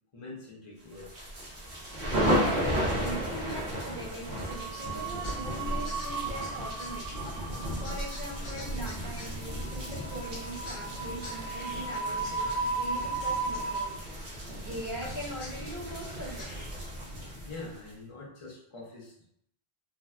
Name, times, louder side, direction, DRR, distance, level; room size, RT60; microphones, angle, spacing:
voice 1, 0.1-1.3 17.5-19.2, left 3 dB, 35° left, -5 dB, 0.6 m, -44 dB
sound 1, 1.0-17.9, equal, 80° right, 1.1 m, -34 dB
sound 2, 1.8-2.6 2.9-3.1 4.3-13.9, right 4 dB, 35° right, 0.3 m, -36 dB
voice 2, 2.3-7.3 7.8-16.5, right 1 dB, 55° right, -3 dB, 0.8 m, -41 dB
sound 3, 4.7-16.7, left 1 dB, 65° left, 0.9 m, -50 dB
3.3 x 2.2 x 2.4 m, 0.70 s
omnidirectional pair, 1.1 m